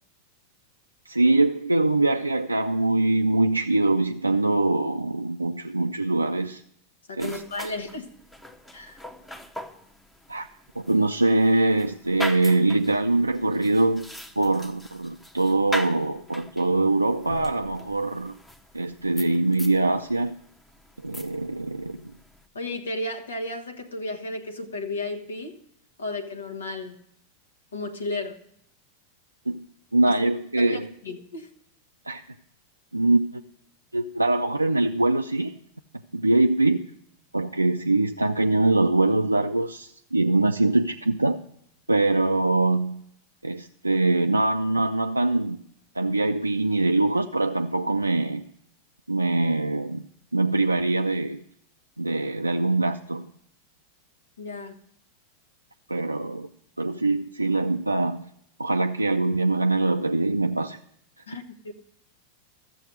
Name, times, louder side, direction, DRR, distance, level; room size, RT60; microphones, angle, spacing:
voice 1, 1.1-6.6 7.2-7.4 10.3-10.5 10.8-14.1 14.4-18.4 18.7-20.3 21.0-22.1 29.5-29.6 29.9-30.9 32.1-32.2 32.9-33.4 33.9-35.5 36.1-36.8 37.3-41.4 41.9-43.0 43.4-45.6 46.0-48.4 49.1-50.1 50.3-51.4 52.0-53.3 55.9-56.5 56.8-58.2 58.6-60.8, right 2 dB, 85° right, 0.4 m, -23 dB
voice 2, 7.1-8.1 8.7-9.0 22.5-25.6 26.0-27.0 27.7-28.4 30.0-30.2 30.6-31.5 54.4-54.8 61.3-61.7, left 2 dB, 70° left, 1.2 m, -33 dB
sound 1, 7.2-22.5, equal, 5° left, 0.9 m, -41 dB
14.0 x 7.3 x 6.4 m
figure-of-eight pair, 90°, 0 cm